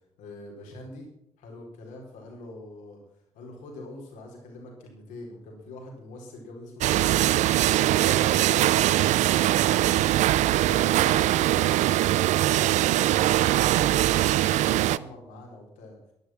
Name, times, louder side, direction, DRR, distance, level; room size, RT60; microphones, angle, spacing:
voice 1, 0.2-1.1 1.4-3.0 3.3-16.0, left 2 dB, 70° left, 0 dB, 4.2 m, -44 dB
sound 1, 6.8-15.0, right 14 dB, 60° right, 0.5 m, -22 dB
12.5 x 11.0 x 7.4 m, 0.76 s
figure-of-eight pair, 40°, 14 cm